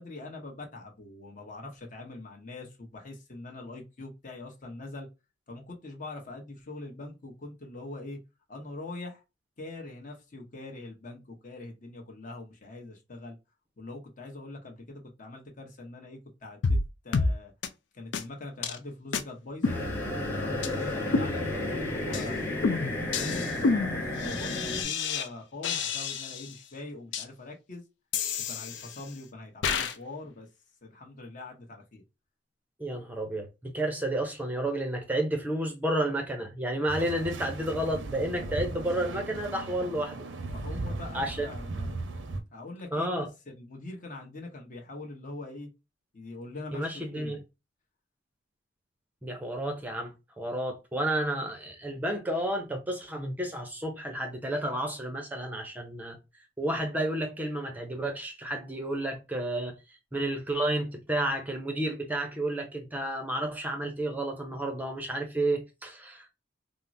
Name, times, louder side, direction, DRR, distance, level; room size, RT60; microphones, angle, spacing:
voice 1, 0.0-5.1 5.5-8.2 8.5-9.2 9.6-13.4 13.8-16.8 17.0-17.5 17.9-19.8 20.4-27.8 28.5-30.5 30.8-32.0 40.5-42.0 42.5-45.7 46.1-47.4, left 2 dB, 45° left, 0.9 m, -43 dB
sound 1, 16.6-16.9 17.1-17.3 17.6-17.7 18.1-18.2 18.6-18.8 19.1-19.2 19.6-20.3 20.6-20.7 21.1-21.8 22.1-22.3 22.6-25.3 25.6-26.5 27.1-27.2 28.1-29.1 29.6-30.0, left 4 dB, 70° left, 0.4 m, -29 dB
sound 2, 19.6-24.8, left 2 dB, 10° left, 0.9 m, -32 dB
voice 2, 32.8-40.2 41.1-41.5 42.9-43.3 46.7-47.4 49.2-50.1 50.4-56.2 56.6-59.7 60.1-66.3, right 1 dB, 10° right, 0.5 m, -31 dB
sound 3, 36.9-42.4, right 2 dB, 80° right, 0.6 m, -37 dB
3.6 x 2.0 x 2.6 m
head